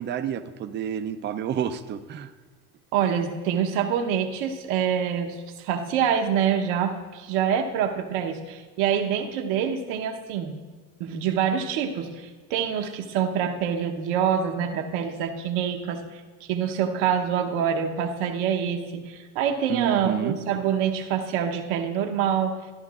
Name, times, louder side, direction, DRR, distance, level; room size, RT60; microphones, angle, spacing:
voice 1, 0.0-2.3 19.7-20.4, right 9 dB, 30° right, 10 dB, 0.4 m, -29 dB
voice 2, 2.9-10.6 11.0-22.6, right 8 dB, 75° right, 4 dB, 1.0 m, -26 dB
13.0 x 11.0 x 2.4 m, 1.4 s
supercardioid pair, 120°, 39 cm